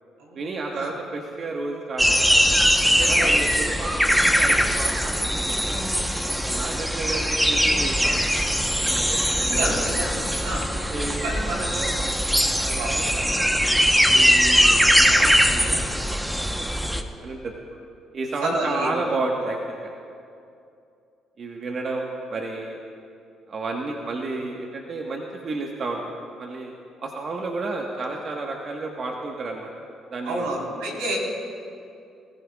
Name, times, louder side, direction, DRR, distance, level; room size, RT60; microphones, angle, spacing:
voice 1, 0.3-2.4 3.0-5.8 6.3-9.7 10.9-12.2 12.5-13.6 14.1-17.5 18.1-19.9 21.4-22.0 22.3-22.8 23.5-26.0 26.4-26.7 27.0-29.7 30.1-30.5, right 3 dB, 50° right, 0 dB, 1.4 m, -32 dB
sound 1, 2.0-17.0, equal, 5° right, 1.0 m, -21 dB
voice 2, 2.9-3.4 9.4-10.7 11.2-11.8 12.8-12.9 13.2-13.4 18.4-18.9 30.3-31.2, right 1 dB, 90° right, -3 dB, 4.1 m, -29 dB
23.0 x 15.0 x 2.4 m, 2.5 s
supercardioid pair, 70°, 0 cm